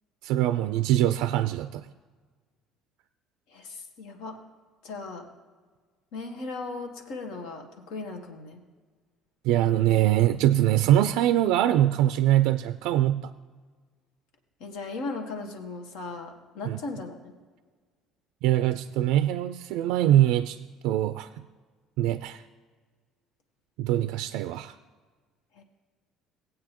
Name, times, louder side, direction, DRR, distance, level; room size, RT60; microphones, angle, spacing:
voice 1, 0.2-1.9 9.4-13.3 16.7-16.8 18.4-20.6 20.8-21.3 22.0-22.4 23.8-24.7, right 13 dB, 80° right, 11 dB, 0.3 m, -23 dB
voice 2, 3.5-4.4 4.8-5.2 6.1-8.6 14.6-17.3 25.5-25.6, left 3 dB, 80° left, 4 dB, 1.5 m, -37 dB
17.5 x 8.5 x 3.0 m, 1.5 s
cardioid pair, 110°, 0 cm